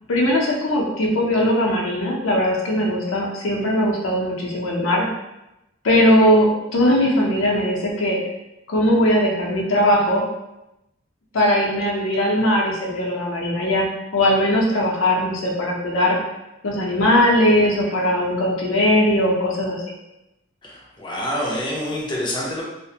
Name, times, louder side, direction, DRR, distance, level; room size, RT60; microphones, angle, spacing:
voice 1, 0.1-5.1 5.8-8.2 8.7-10.2 11.3-13.9 14.1-16.2 16.6-19.8, left 1 dB, 80° left, -2 dB, 0.6 m, -19 dB
voice 2, 20.6-22.6, equal, 25° left, -4 dB, 0.5 m, -27 dB
2.4 x 2.1 x 2.7 m, 0.92 s
head